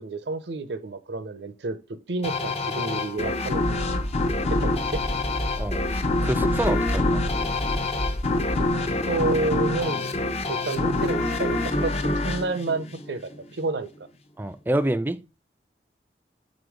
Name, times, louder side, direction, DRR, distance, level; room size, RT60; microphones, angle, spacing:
voice 1, 0.0-1.8 2.1-3.9 4.5-5.0 8.7-10.0 10.5-13.9, right 3 dB, 70° right, 0.7 m, -30 dB
sound 1, 2.2-13.5, left 2 dB, 35° left, 0.7 m, -26 dB
sound 2, 3.6-8.7, equal, 85° left, 1.2 m, -30 dB
voice 2, 5.6-7.2 14.4-15.2, right 1 dB, 10° right, 0.4 m, -27 dB
5.2 x 3.8 x 4.9 m
head